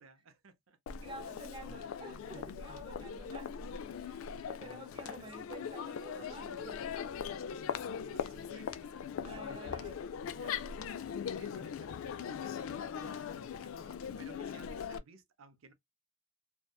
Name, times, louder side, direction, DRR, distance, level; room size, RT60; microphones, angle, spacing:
voice 1, 0.0-1.0 3.6-3.8 4.9-5.3 8.1-10.0 10.3-10.6 11.3-15.7, right 4 dB, 70° right, 0.6 m, -58 dB
Crowd, 0.9-15.0, left 7 dB, 70° left, 0.3 m, -40 dB
voice 2, 1.0-3.5 4.0-4.2 4.5-6.8 9.2-10.0 10.7-10.9, right 2 dB, 25° right, 0.3 m, -50 dB
2.7 x 2.2 x 2.2 m
head